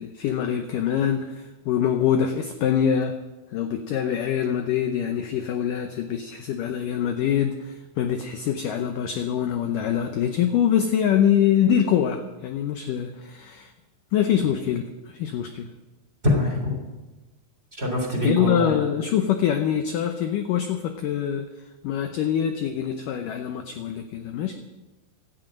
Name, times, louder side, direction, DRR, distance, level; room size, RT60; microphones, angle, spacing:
voice 1, 0.0-3.2 3.5-13.7 14.1-15.7 18.2-21.5 21.8-24.6, left 9 dB, 80° left, 6 dB, 1.9 m, -24 dB
voice 2, 16.2-16.7 17.8-18.7, left 1 dB, 15° right, 1 dB, 3.1 m, -23 dB
16.5 x 13.5 x 5.3 m, 1.1 s
omnidirectional pair, 4.9 m